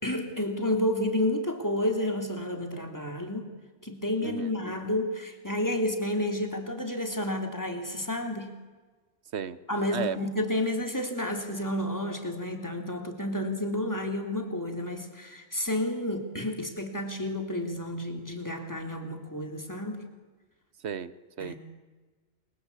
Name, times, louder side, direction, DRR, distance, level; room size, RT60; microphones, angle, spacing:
voice 1, 0.0-3.5 3.8-8.5 9.7-20.1 21.4-21.6, left 1 dB, 15° left, 4 dB, 3.2 m, -30 dB
voice 2, 20.8-21.6, right 7 dB, 75° right, 15 dB, 1.3 m, -34 dB
29.0 x 23.5 x 8.3 m, 1.4 s
omnidirectional pair, 1.1 m